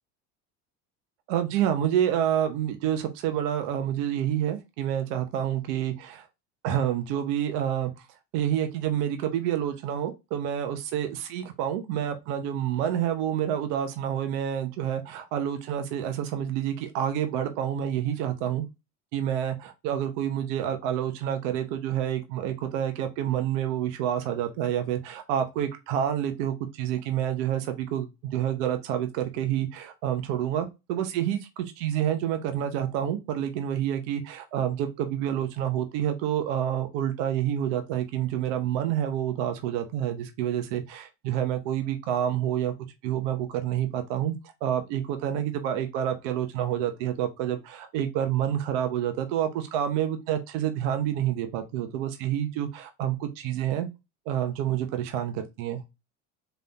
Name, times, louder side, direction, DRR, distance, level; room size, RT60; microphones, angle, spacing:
voice 1, 1.3-6.3 6.6-8.1 8.3-18.7 19.1-42.7 43.0-44.3 44.6-53.9 54.3-55.8, right 10 dB, 75° right, 0.9 m, -28 dB
4.0 x 2.6 x 3.9 m
supercardioid pair, 115°, 36 cm